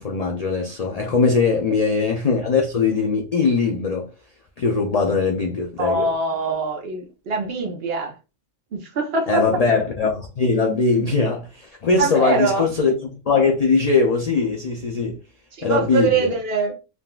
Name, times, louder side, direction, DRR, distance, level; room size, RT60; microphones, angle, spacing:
voice 1, 0.0-4.1 4.6-6.1 9.3-15.2 15.6-16.3, left 4 dB, 85° left, 0.3 m, -21 dB
voice 2, 5.8-8.1 8.7-9.4 12.0-12.7 15.5-16.8, right 3 dB, 60° right, 0.9 m, -23 dB
3.6 x 2.3 x 2.2 m
omnidirectional pair, 1.3 m